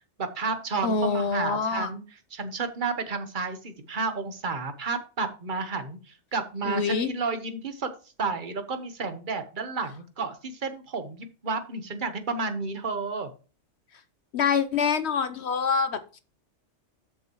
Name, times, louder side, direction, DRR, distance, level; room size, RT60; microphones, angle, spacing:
voice 1, 0.2-2.0 2.3-7.9 8.2-13.3, right 4 dB, 45° right, 8 dB, 1.3 m, -31 dB
voice 2, 0.8-1.9 6.7-7.1 14.3-16.2, left 5 dB, 65° left, 10 dB, 1.1 m, -26 dB
13.5 x 6.3 x 3.1 m, 0.35 s
omnidirectional pair, 1.2 m